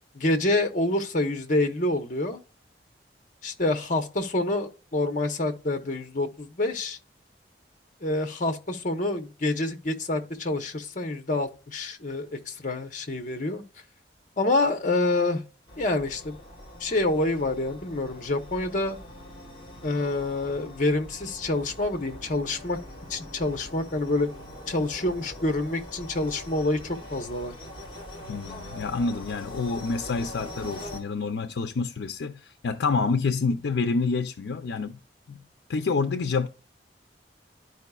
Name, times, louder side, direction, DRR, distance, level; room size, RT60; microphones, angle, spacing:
voice 1, 0.1-2.4 3.4-7.0 8.0-13.6 14.4-15.4 15.8-16.4 16.8-19.0 19.8-22.8 23.1-24.3 24.7-27.5, left 2 dB, 45° left, 0.9 m, -27 dB
sound 1, 15.7-31.0, left 1 dB, 25° left, 1.9 m, -43 dB
voice 2, 28.3-35.0 35.3-35.4 35.7-36.5, left 4 dB, 80° left, 0.5 m, -28 dB
12.0 x 4.9 x 2.3 m
head